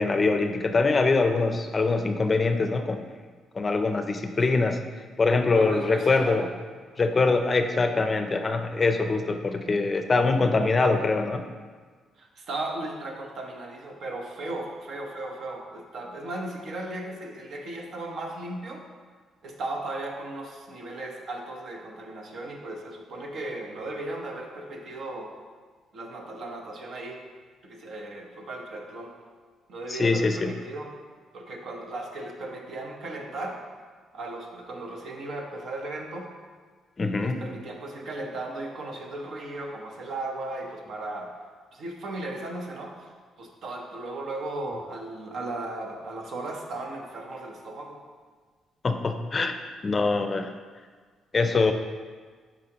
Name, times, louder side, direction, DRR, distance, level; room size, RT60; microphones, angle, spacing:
voice 1, 0.0-3.1 3.5-4.8 5.2-6.5 7.0-11.4 29.9-30.5 37.0-37.4 48.8-49.5 49.8-50.5 51.3-51.7, left 3 dB, 30° left, 7 dB, 0.5 m, -23 dB
voice 2, 5.5-6.5 12.2-18.8 19.4-25.3 25.9-27.2 27.6-29.1 29.7-30.9 31.3-33.6 34.1-36.3 37.2-41.3 41.7-43.1 43.4-48.0, right 2 dB, 65° right, 1 dB, 1.0 m, -36 dB
8.2 x 5.0 x 2.9 m, 1.5 s
cardioid pair, 90°, 0 cm